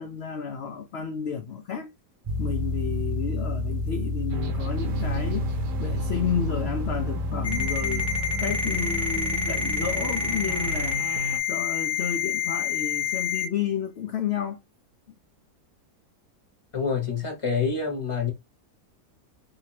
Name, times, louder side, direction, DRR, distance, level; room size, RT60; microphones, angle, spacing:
voice 1, 0.0-1.9 2.4-8.1 8.4-11.0 11.5-14.6, left 7 dB, 70° left, 0.6 m, -31 dB
sound 1, 2.3-10.9, left 2 dB, 55° right, 0.3 m, -31 dB
sound 2, 4.3-11.4, right 4 dB, 85° right, 1.3 m, -34 dB
Ringtone, 7.4-13.5, left 6 dB, 35° left, 0.8 m, -27 dB
voice 2, 16.7-18.3, left 5 dB, 20° left, 1.2 m, -27 dB
3.7 x 2.7 x 2.8 m
omnidirectional pair, 1.8 m